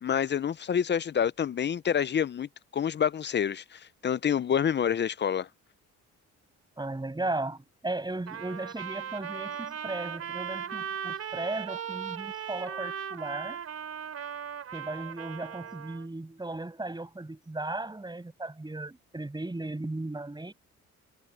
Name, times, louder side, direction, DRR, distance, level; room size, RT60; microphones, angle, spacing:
voice 1, 0.0-5.5, left 8 dB, 35° left, 0.6 m, -28 dB
voice 2, 6.8-13.6 14.7-20.5, right 2 dB, 15° right, 6.1 m, -36 dB
Trumpet, 8.3-16.1, right 8 dB, 55° right, 2.8 m, -38 dB
cardioid pair, 90°, 30 cm